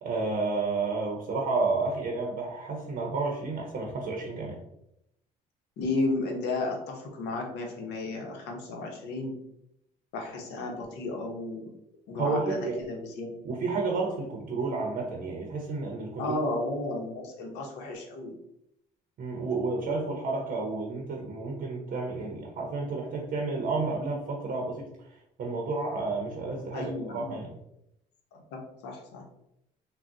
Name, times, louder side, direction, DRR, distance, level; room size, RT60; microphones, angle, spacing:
voice 1, 0.0-4.6 12.2-12.8 13.4-16.4 19.2-27.5, right 3 dB, 55° right, 0 dB, 0.6 m, -31 dB
voice 2, 5.8-9.4 10.1-11.7 12.1-13.3 16.2-18.3 26.7-27.4 28.3-29.2, left 2 dB, 85° left, 2 dB, 0.7 m, -33 dB
3.7 x 2.0 x 2.4 m, 0.81 s
cardioid pair, 110°, 17 cm